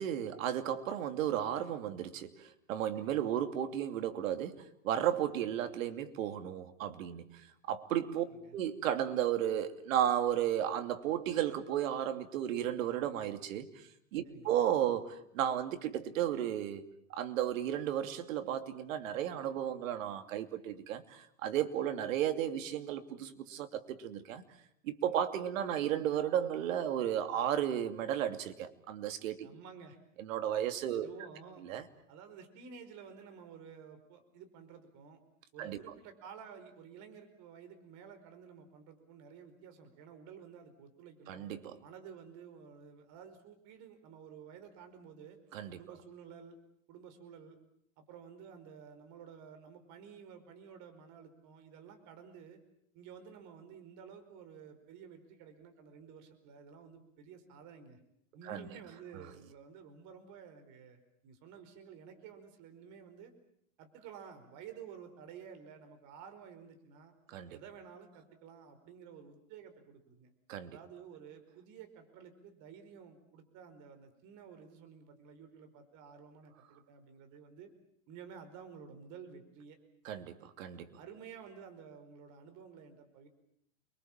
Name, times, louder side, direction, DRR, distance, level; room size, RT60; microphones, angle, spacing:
voice 1, 0.0-8.2 8.5-16.8 17.1-24.4 24.8-29.5 30.2-31.1 31.6-31.8 35.6-35.8 41.3-41.8 45.5-45.8 58.4-58.6 67.3-67.6 70.5-70.8 80.0-80.9, right 10 dB, 75° right, 8 dB, 2.8 m, -34 dB
voice 2, 2.9-3.3 8.3-8.6 14.2-14.6 29.4-30.0 30.9-31.7 32.1-35.2 35.5-41.5 41.8-45.4 45.7-46.6 46.9-47.6 48.0-52.6 52.9-58.0 58.3-63.3 63.8-67.1 67.5-70.3 70.7-77.7 78.1-79.8 81.0-83.3, right 7 dB, 45° right, 8 dB, 4.9 m, -52 dB
29.0 x 23.5 x 7.5 m, 0.71 s
supercardioid pair, 135°, 40 cm